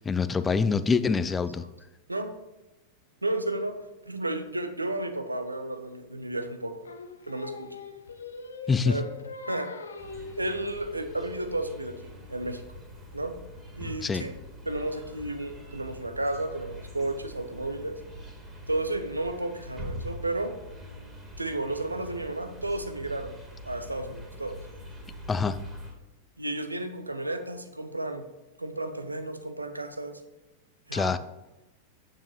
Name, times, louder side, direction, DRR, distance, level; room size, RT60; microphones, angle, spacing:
voice 1, 0.0-1.6 8.7-9.0 14.0-14.3 25.3-25.6 30.9-31.2, left 5 dB, 15° left, 13 dB, 0.5 m, -25 dB
voice 2, 3.2-3.8 4.1-6.8 7.3-7.7 8.9-9.0 9.5-9.7 10.4-12.6 13.1-13.4 13.8-14.3 14.7-17.9 18.6-20.5 21.4-23.4 23.6-24.6 26.4-28.2 28.6-30.2 30.9-31.1, right 2 dB, 85° right, 8 dB, 0.8 m, -32 dB
Singing, 6.8-12.1, left 4 dB, 70° left, 0.8 m, -41 dB
sound 1, 10.0-25.9, equal, 10° right, 2.2 m, -44 dB
8.9 x 7.4 x 3.3 m, 1.1 s
figure-of-eight pair, 90°, 0 cm